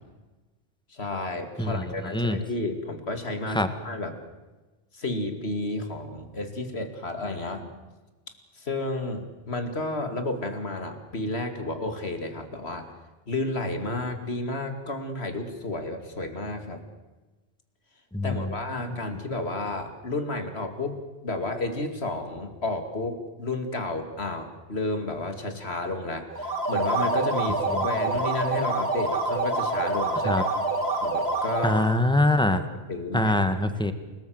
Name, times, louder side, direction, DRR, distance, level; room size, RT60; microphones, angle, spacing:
voice 1, 0.9-4.2 4.9-7.7 8.6-12.9 13.3-16.8 18.2-21.0 21.2-30.4 31.0-31.8 32.5-32.6 32.9-33.4, left 2 dB, 60° left, 6 dB, 2.8 m, -31 dB
voice 2, 18.1-18.5 27.7-27.9 30.2-30.4 31.6-32.6 33.1-33.9, left 1 dB, 5° left, 9 dB, 1.6 m, -23 dB
sound 1, 26.3-32.0, right 2 dB, 60° right, 4.0 m, -26 dB
29.0 x 19.0 x 7.9 m, 1.2 s
omnidirectional pair, 1.2 m